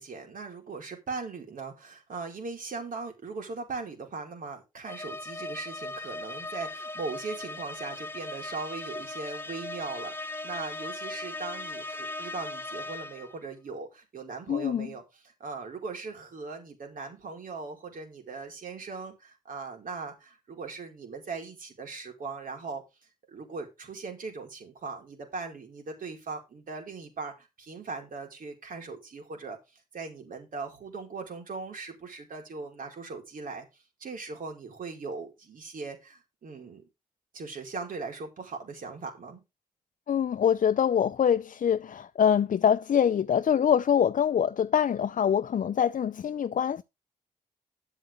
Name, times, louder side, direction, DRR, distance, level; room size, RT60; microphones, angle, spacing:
voice 1, 0.0-22.8 23.3-36.8 37.3-39.4, right 4 dB, 70° right, 4.8 m, -39 dB
sound 1, 4.9-13.4, left 2 dB, 15° left, 1.9 m, -38 dB
voice 2, 14.5-14.9 40.1-46.8, left 8 dB, 60° left, 0.6 m, -24 dB
11.0 x 8.0 x 3.8 m
supercardioid pair, 50°, 15 cm